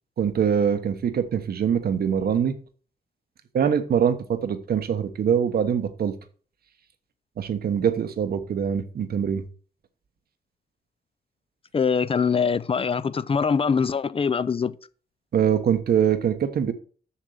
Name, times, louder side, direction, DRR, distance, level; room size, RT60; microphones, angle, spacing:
voice 1, 0.2-2.5 3.5-6.1 7.4-9.4 15.3-16.7, right 8 dB, 75° right, 1.1 m, -23 dB
voice 2, 11.7-14.8, left 6 dB, 35° left, 0.5 m, -23 dB
7.2 x 6.7 x 6.4 m
cardioid pair, 100°, 16 cm